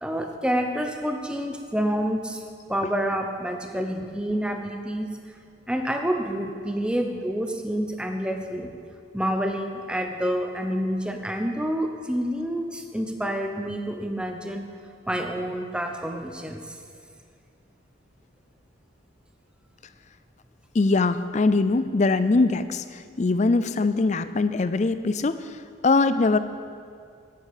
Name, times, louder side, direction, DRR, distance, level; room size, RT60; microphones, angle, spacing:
voice 1, 0.0-2.4 2.7-5.2 5.7-8.7 9.1-14.7 15.1-16.8, equal, 5° right, 4 dB, 0.7 m, -28 dB
voice 2, 20.7-26.4, left 3 dB, 35° left, 12 dB, 0.4 m, -22 dB
10.5 x 8.2 x 8.4 m, 2.3 s
head